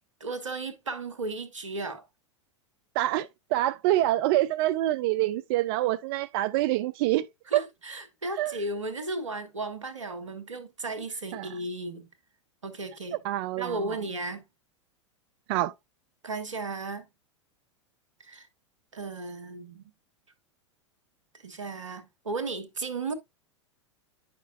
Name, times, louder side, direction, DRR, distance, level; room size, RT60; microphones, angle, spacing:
voice 1, 0.2-2.0 7.5-12.1 12.6-13.2 13.6-14.4 16.2-17.0 18.2-18.5 18.9-19.8 21.4-23.1, right 2 dB, 85° right, 1.3 m, -35 dB
voice 2, 3.0-7.3 7.5-7.6 8.4-8.6 11.3-11.5 13.2-13.8 15.5-15.7, right 15 dB, 50° right, 0.4 m, -26 dB
9.4 x 5.9 x 2.5 m
hypercardioid pair, 95°, 16 cm